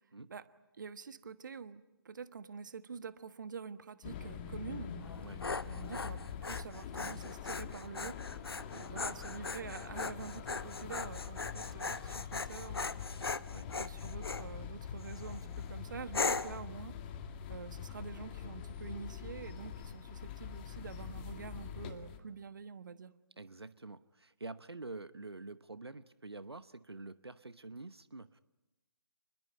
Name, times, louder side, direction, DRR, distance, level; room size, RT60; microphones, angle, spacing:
voice 1, 0.8-4.9 5.6-8.2 8.8-12.9 13.8-17.0 17.5-23.1, right 6 dB, 50° right, 13 dB, 1.3 m, -47 dB
sound 1, 4.0-22.2, left 7 dB, 25° left, 2.1 m, -44 dB
Dog, 5.0-14.5 15.0-15.4 16.1-16.6, left 4 dB, 75° left, 1.0 m, -39 dB
voice 2, 8.6-9.1 13.5-13.7 23.4-28.4, right 3 dB, 85° right, 14 dB, 0.9 m, -47 dB
29.0 x 21.5 x 8.8 m, 1.0 s
figure-of-eight pair, 150°, 13 cm